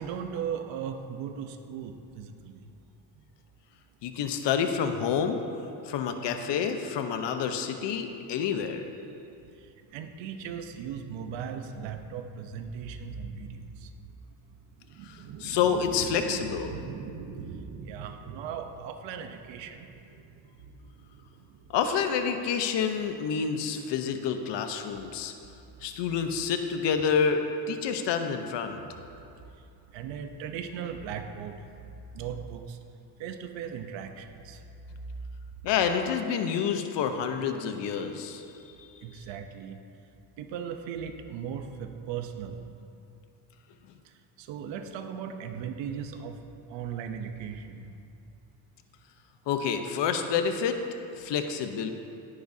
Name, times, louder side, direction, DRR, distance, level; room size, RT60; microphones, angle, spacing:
voice 1, 0.0-2.5 7.2-7.3 9.9-13.6 14.9-19.9 29.9-31.6 32.1-32.8 33.2-34.6 39.0-39.8 40.4-42.6 44.4-46.4 46.7-47.9, right 7 dB, 85° right, 6 dB, 0.9 m, -37 dB
voice 2, 4.0-5.4 5.8-8.9 15.0-16.8 21.7-25.3 25.8-28.8 35.6-39.2 49.5-50.8 51.2-51.9, left 7 dB, 70° left, 7 dB, 1.0 m, -28 dB
17.5 x 10.0 x 2.8 m, 2.7 s
cardioid pair, 100°, 43 cm